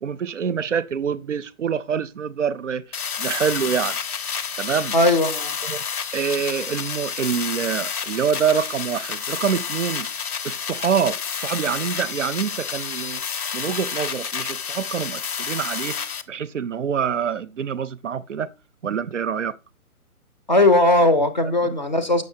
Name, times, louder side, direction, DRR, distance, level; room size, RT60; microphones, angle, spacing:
voice 1, 0.0-2.8 3.2-4.0 4.6-4.9 5.6-5.8 6.1-10.1 10.4-13.2 13.5-18.5 18.8-19.6 21.4-21.8, right 7 dB, 55° right, 0.5 m, -26 dB
sound 1, 2.9-16.2, left 7 dB, 80° left, 0.8 m, -30 dB
voice 2, 4.9-5.5 20.5-22.2, left 2 dB, 30° left, 0.5 m, -18 dB
6.5 x 6.3 x 2.6 m
hypercardioid pair, 160°, 44 cm